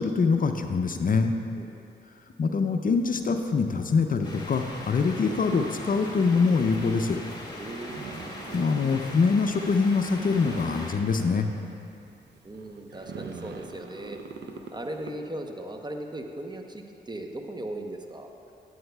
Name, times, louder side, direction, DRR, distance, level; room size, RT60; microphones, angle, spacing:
voice 1, 0.0-1.3 2.4-7.2 8.5-11.5, left 4 dB, 45° left, 6 dB, 0.5 m, -24 dB
sound 1, 2.9-15.1, right 4 dB, 65° right, 0.7 m, -44 dB
sound 2, 4.2-11.0, left 1 dB, 20° left, 1.8 m, -41 dB
voice 2, 7.5-8.1 12.4-14.2 14.7-18.3, right 1 dB, 20° right, 3 dB, 0.8 m, -38 dB
12.0 x 8.0 x 2.3 m, 2.6 s
supercardioid pair, 50°, 20 cm